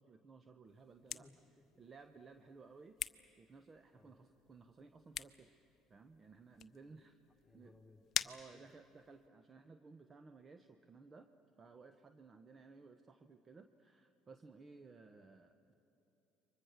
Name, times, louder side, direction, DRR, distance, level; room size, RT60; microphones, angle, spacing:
voice 1, 0.0-1.3 1.8-3.0 3.4-5.6 5.9-7.2 7.5-7.7 8.2-11.3 11.6-15.7, right 4 dB, 35° right, 8 dB, 1.0 m, -58 dB
sound 1, 0.6-9.3, left 9 dB, 50° left, 0.6 m, -47 dB
voice 2, 1.1-1.6 3.9-4.2 7.4-8.6 15.0-15.3, left 2 dB, 10° left, 1 dB, 3.1 m, -64 dB
29.5 x 24.0 x 6.5 m, 3.0 s
hypercardioid pair, 65°, 0 cm